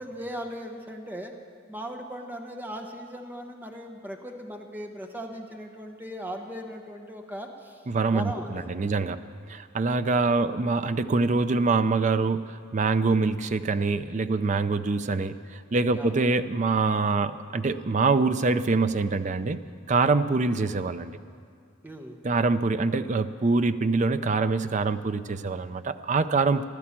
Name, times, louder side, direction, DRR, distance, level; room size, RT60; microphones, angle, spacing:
voice 1, 0.0-1.3 1.7-7.8 8.1-9.1 16.0-16.1 21.8-22.2, equal, 10° right, 3 dB, 1.1 m, -38 dB
voice 2, 7.9-19.6 19.9-21.2 22.2-26.7, right 3 dB, 35° right, 11 dB, 0.5 m, -25 dB
15.5 x 11.5 x 7.4 m, 2.3 s
head